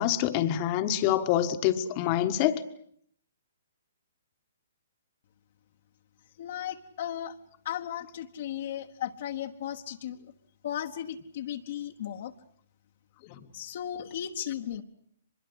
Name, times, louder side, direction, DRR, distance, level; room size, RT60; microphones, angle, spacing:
voice 1, 0.0-2.6 13.3-13.4, left 11 dB, 35° left, 1.4 m, -26 dB
voice 2, 6.4-7.4 7.6-10.3 10.6-12.3 13.5-14.8, left 10 dB, 50° left, 1.3 m, -36 dB
24.5 x 21.5 x 8.1 m
figure-of-eight pair, 125°, 0 cm